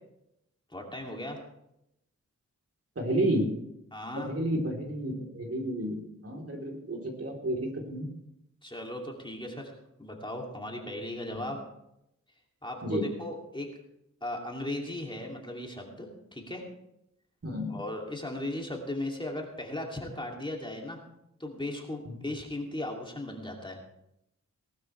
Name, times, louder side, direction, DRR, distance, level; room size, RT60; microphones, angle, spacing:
voice 1, 0.7-1.4 3.9-4.3 8.6-9.7 10.0-11.6 12.6-13.7 14.2-16.7 17.7-21.0 21.4-23.8, left 1 dB, 15° left, 0 dB, 2.6 m, -37 dB
voice 2, 3.0-3.5 4.2-8.0 12.8-13.0 17.4-17.7 22.1-22.2, right 1 dB, 50° right, 0 dB, 3.4 m, -31 dB
19.0 x 12.5 x 3.3 m, 0.83 s
wide cardioid pair, 85°, 31 cm